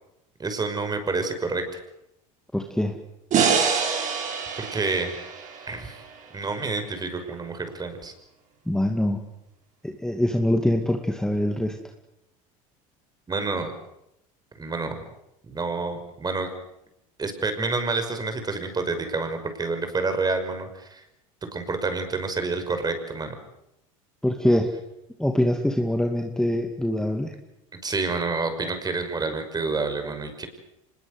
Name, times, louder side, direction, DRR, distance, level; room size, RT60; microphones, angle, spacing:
voice 1, 0.4-1.6 4.6-5.1 5.7-6.0 6.3-8.1 13.3-13.7 14.6-15.0 15.4-16.5 17.2-21.0 21.5-23.4 27.8-30.5, right 3 dB, 20° right, 8 dB, 5.8 m, -28 dB
voice 2, 2.5-2.9 8.7-9.2 9.8-11.8 24.2-24.7 25.2-27.3, left 1 dB, 5° left, 4 dB, 2.3 m, -24 dB
sound 1, 3.3-6.5, right 6 dB, 45° right, 7.0 m, -26 dB
25.5 x 21.0 x 8.1 m, 0.85 s
supercardioid pair, 95°, 18 cm